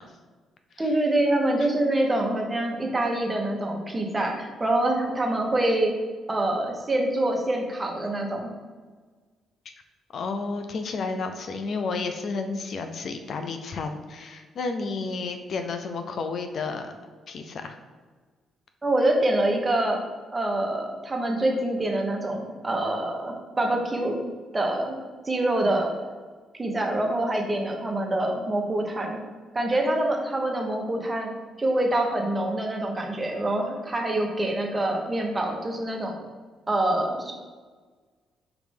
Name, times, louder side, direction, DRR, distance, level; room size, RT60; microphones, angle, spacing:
voice 1, 0.8-5.9 6.3-8.5 18.8-20.0 20.3-24.2 24.5-25.0 25.2-25.9 26.6-29.2 29.5-31.3 31.6-36.2 36.7-37.3, right 1 dB, 20° right, 1 dB, 0.9 m, -25 dB
voice 2, 10.1-16.9 17.3-17.8, left 4 dB, 55° left, 7 dB, 0.4 m, -31 dB
5.0 x 3.1 x 3.4 m, 1.4 s
cardioid pair, 90°, 0 cm